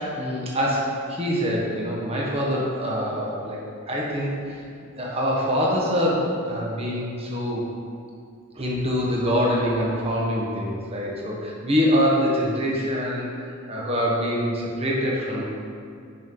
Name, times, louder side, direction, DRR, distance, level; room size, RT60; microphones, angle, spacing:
voice 1, 0.0-3.6 3.9-4.6 5.0-7.7 8.5-15.4, equal, 25° right, -4 dB, 1.4 m, -25 dB
10.5 x 6.0 x 3.9 m, 2.4 s
head